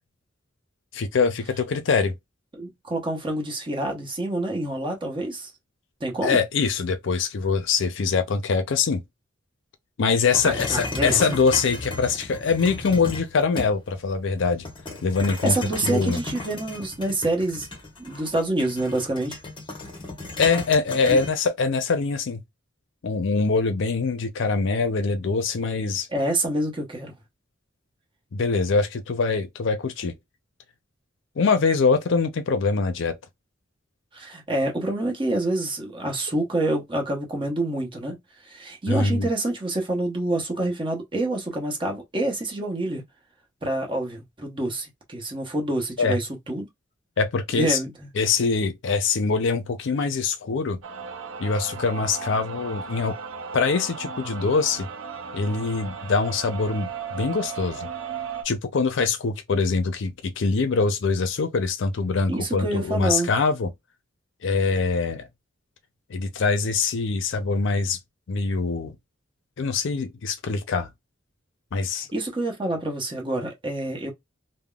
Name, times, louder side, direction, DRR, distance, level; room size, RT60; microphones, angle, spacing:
voice 1, 0.9-2.1 6.2-9.0 10.0-14.7 15.0-15.6 15.8-16.2 20.4-22.4 23.0-26.1 28.3-30.1 31.4-33.1 38.9-39.3 46.0-46.2 47.2-47.8 48.2-50.8 51.4-53.2 53.5-54.9 55.3-57.9 58.4-63.7 64.4-65.3 66.1-68.0 68.3-68.9 69.6-70.9 71.7-72.1, left 4 dB, 65° left, 0.5 m, -23 dB
voice 2, 2.6-5.5 6.0-6.4 10.4-11.4 15.2-17.7 18.0-19.4 21.0-21.2 26.1-27.1 34.1-43.0 43.6-46.7 47.5-48.1 62.3-63.3 71.9-74.1, right 1 dB, 25° right, 0.9 m, -27 dB
sound 1, 10.3-14.0 14.7-21.3, left 2 dB, 25° left, 0.9 m, -35 dB
sound 2, 50.8-58.4, right 6 dB, 75° right, 0.6 m, -36 dB
3.5 x 2.0 x 2.3 m
head